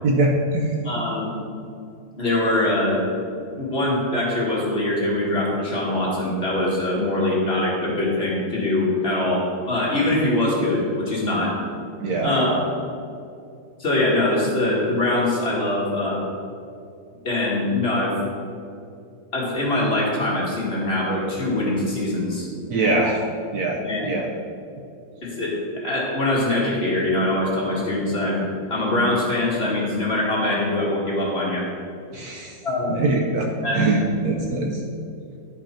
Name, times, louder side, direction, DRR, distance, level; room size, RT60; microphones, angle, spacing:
voice 1, 0.0-0.7 12.0-12.3 22.7-23.2 23.5-24.3 32.1-32.5 32.9-34.8, right 2 dB, 65° right, 1 dB, 1.1 m, -22 dB
voice 2, 0.8-1.3 2.2-3.0 3.4-11.6 12.2-12.7 13.8-16.2 17.2-18.2 19.3-22.5 23.9-24.1 25.2-31.7 32.6-33.0 33.6-34.0, left 1 dB, 35° left, -5 dB, 1.9 m, -23 dB
10.5 x 5.3 x 4.4 m, 2.5 s
omnidirectional pair, 2.0 m